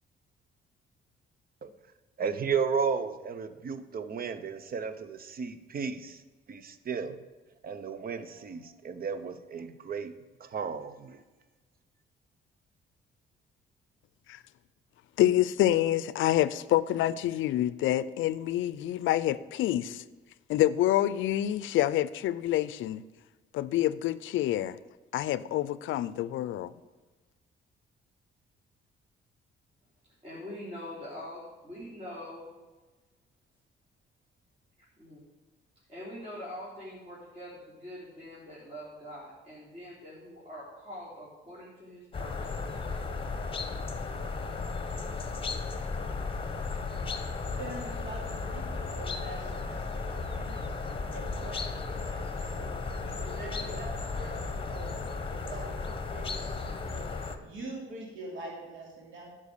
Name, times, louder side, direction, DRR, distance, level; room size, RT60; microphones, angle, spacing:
voice 1, 2.2-6.2 6.5-7.2 7.6-10.1 10.4-11.2, right 6 dB, 50° right, 12 dB, 0.8 m, -33 dB
voice 2, 15.2-20.0 20.5-23.0 23.5-24.8 25.1-26.7, left 13 dB, 80° left, 17 dB, 0.5 m, -27 dB
voice 3, 30.2-32.5 35.0-35.2 35.9-42.5, left 1 dB, 30° right, -9 dB, 3.7 m, -44 dB
sound 1, 42.1-57.4, left 4 dB, 25° left, 1.1 m, -35 dB
voice 4, 47.5-50.7 51.1-53.9 54.1-54.9 55.3-57.1 57.4-59.3, right 2 dB, 75° right, -2 dB, 3.1 m, -44 dB
10.5 x 5.4 x 6.6 m, 1.2 s
cardioid pair, 90°, 20 cm